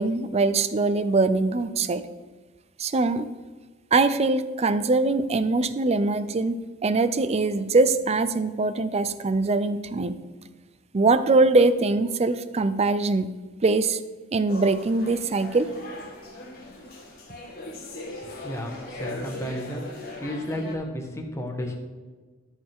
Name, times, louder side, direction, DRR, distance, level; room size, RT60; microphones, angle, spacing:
voice 1, 0.0-2.0 2.8-3.3 3.9-6.5 6.8-10.1 10.9-13.3 13.6-14.0 14.3-15.7, right 3 dB, 30° right, 13 dB, 0.4 m, -22 dB
sound 1, 14.5-20.8, left 2 dB, 45° left, 2.1 m, -39 dB
voice 2, 18.4-19.9 20.2-21.8, left 1 dB, 15° left, 2 dB, 1.2 m, -32 dB
13.5 x 5.6 x 3.6 m, 1.3 s
head